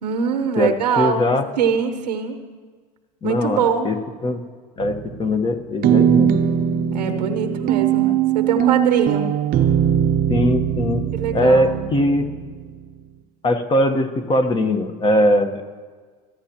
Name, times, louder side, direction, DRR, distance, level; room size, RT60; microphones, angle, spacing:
voice 1, 0.0-2.4 3.2-3.9 6.9-9.3 11.1-11.8, right 7 dB, 90° right, 7 dB, 1.0 m, -23 dB
voice 2, 0.6-1.5 3.2-4.4 4.8-6.4 10.3-11.0 11.3-12.3 13.4-15.6, left 1 dB, 25° left, 7 dB, 1.2 m, -20 dB
sound 1, 4.8-5.4 5.8-12.8, right 9 dB, 45° right, 0.8 m, -20 dB
22.0 x 10.0 x 3.0 m, 1.5 s
hypercardioid pair, 90°, 20 cm